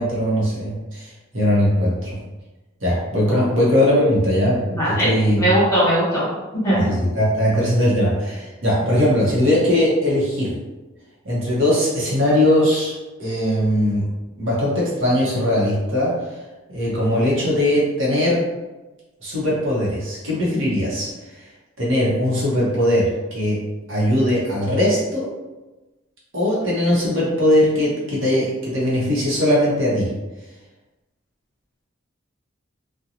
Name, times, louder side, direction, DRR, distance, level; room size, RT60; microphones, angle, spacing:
voice 1, 0.0-2.2 2.8-5.4 6.9-10.5 11.2-12.9 13.2-14.0 14.4-16.1 16.7-18.4 19.2-21.1 21.8-23.6 23.9-25.3 26.3-30.1, left 1 dB, 70° right, -6 dB, 0.9 m, -20 dB
voice 2, 4.7-6.2 6.6-6.9, right 1 dB, 15° left, -9 dB, 1.1 m, -19 dB
2.5 x 2.2 x 2.8 m, 1.1 s
head